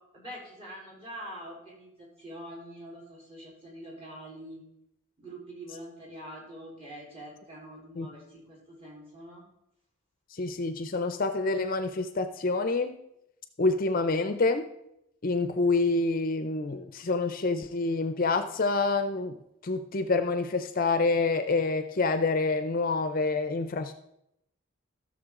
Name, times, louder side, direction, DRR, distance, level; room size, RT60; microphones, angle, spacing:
voice 1, 0.1-4.6 5.2-9.5, right 1 dB, 30° right, -5 dB, 4.0 m, -44 dB
voice 2, 10.3-13.0 13.6-14.7 15.2-19.4 19.6-23.9, left 3 dB, 45° left, 9 dB, 0.5 m, -27 dB
15.0 x 6.6 x 3.7 m, 0.82 s
head